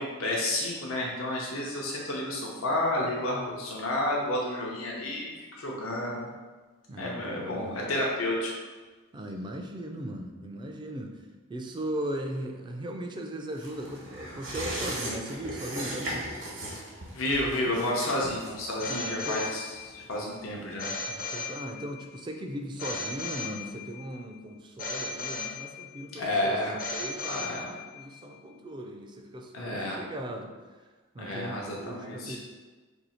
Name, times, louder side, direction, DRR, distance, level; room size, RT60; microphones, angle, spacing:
voice 1, 0.0-6.3 7.0-8.5 14.7-14.8 17.1-19.6 19.9-20.9 26.1-26.8 27.3-27.7 29.5-30.0 31.2-32.4, left 1 dB, 80° left, -2 dB, 0.7 m, -30 dB
voice 2, 6.9-7.8 9.1-11.2 11.5-16.3 18.8-19.5 21.1-30.5 31.1-32.4, right 1 dB, 20° right, 3 dB, 0.3 m, -38 dB
sound 1, 13.6-20.6 20.9-21.0, right 1 dB, 65° right, 1.0 m, -38 dB
Telephone, 18.8-20.0 20.8-22.0 22.8-24.0 24.8-26.0 26.8-28.0, left 3 dB, 45° left, 0.5 m, -36 dB
2.7 x 2.7 x 4.2 m, 1.3 s
head